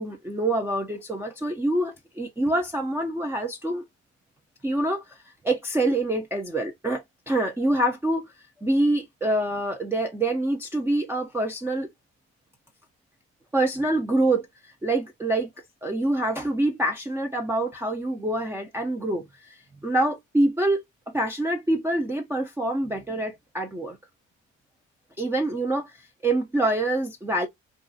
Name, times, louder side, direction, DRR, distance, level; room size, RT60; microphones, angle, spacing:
voice 1, 0.0-3.8 4.6-8.3 8.6-11.9 13.5-15.5 15.8-20.8 21.1-24.0 25.2-27.5, right 1 dB, 10° right, 0.4 m, -26 dB
2.4 x 2.3 x 2.5 m
cardioid pair, 90°, 30 cm